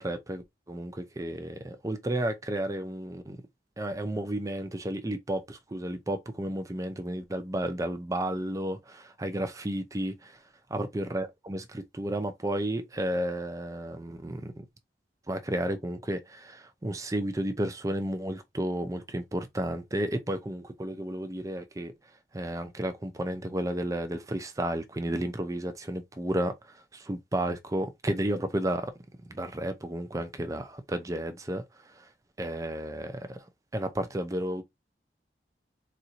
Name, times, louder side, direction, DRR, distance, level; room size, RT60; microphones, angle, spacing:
voice 1, 0.0-3.4 3.8-10.4 10.7-14.7 15.3-21.9 22.3-26.5 26.9-28.9 29.3-31.6 32.0-32.1 32.4-33.4 33.7-34.6, right 1 dB, 20° right, 0.5 m, -32 dB
4.3 x 2.6 x 2.6 m
head